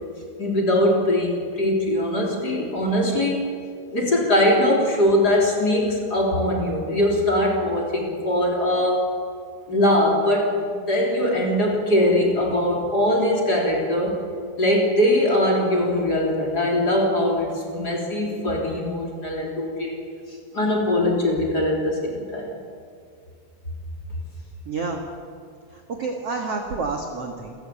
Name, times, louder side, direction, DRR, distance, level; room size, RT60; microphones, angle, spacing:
voice 1, 0.4-3.5 3.9-9.1 9.7-14.2 14.6-20.0 20.3-22.6, left 1 dB, 25° left, 0 dB, 3.3 m, -21 dB
voice 2, 24.6-25.0 25.9-27.5, right 4 dB, 65° right, 3 dB, 1.5 m, -28 dB
28.5 x 15.0 x 8.6 m, 2.2 s
omnidirectional pair, 5.4 m